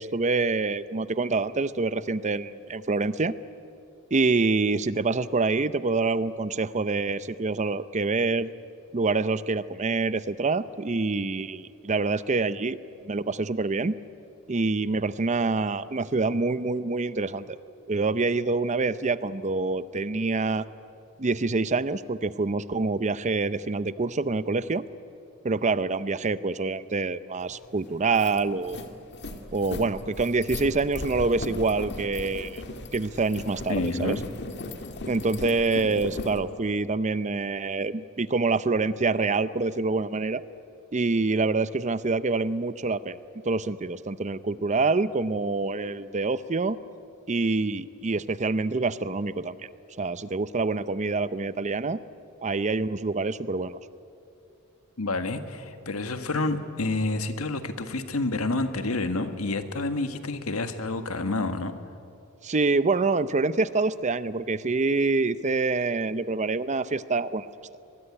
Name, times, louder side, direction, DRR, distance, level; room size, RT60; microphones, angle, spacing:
voice 1, 0.0-3.3 4.1-8.5 8.9-12.8 13.0-13.9 14.5-17.6 17.9-20.7 21.2-24.8 25.4-28.9 29.5-32.6 32.9-34.2 35.1-40.4 40.9-43.2 43.5-46.8 47.3-49.6 50.0-52.0 52.4-53.8 62.4-67.5, right 3 dB, 30° right, 15 dB, 0.6 m, -26 dB
sound 1, 27.5-27.6 28.0-36.4, left 2 dB, 50° left, 2.0 m, -37 dB
voice 2, 33.7-34.2 55.0-61.7, left 2 dB, 70° left, 8 dB, 1.6 m, -29 dB
24.0 x 21.0 x 9.9 m, 2.7 s
head